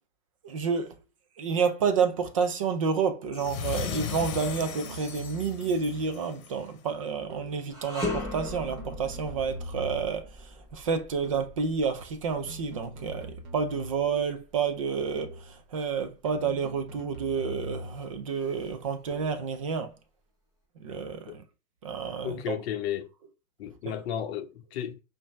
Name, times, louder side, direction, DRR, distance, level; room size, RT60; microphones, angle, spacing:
voice 1, 0.4-0.9 1.4-19.9 20.8-21.4 21.8-22.6 23.8-23.9, right 5 dB, 25° right, 0.4 m, -30 dB
sound 1, 3.3-6.6, left 8 dB, 70° left, 1.0 m, -36 dB
sound 2, 3.4-3.8 4.4-6.4 7.3-7.7 8.4-10.3 11.2-11.6 12.3-14.3 15.2-15.6 16.3-18.2 19.1-19.5, right 1 dB, 70° right, 1.3 m, -42 dB
sound 3, 7.7-17.0 17.4-17.6 18.4-19.3, left 2 dB, 5° right, 0.9 m, -40 dB
voice 2, 22.2-23.1 23.6-25.0, left 10 dB, 45° left, 0.9 m, -33 dB
5.3 x 2.7 x 3.1 m
hypercardioid pair, 145°, 44 cm